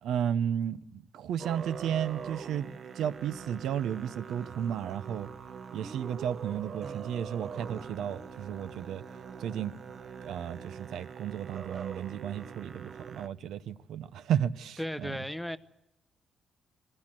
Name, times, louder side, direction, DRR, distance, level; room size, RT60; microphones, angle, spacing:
voice 1, 0.0-5.3 5.7-9.0 9.4-9.7 10.2-15.2, right 9 dB, 85° right, 0.7 m, -33 dB
Musical instrument, 1.4-13.3, right 6 dB, 45° right, 0.8 m, -43 dB
voice 2, 14.8-15.6, equal, ahead, 0.7 m, -35 dB
21.5 x 16.5 x 7.6 m
cardioid pair, 150°, 0 cm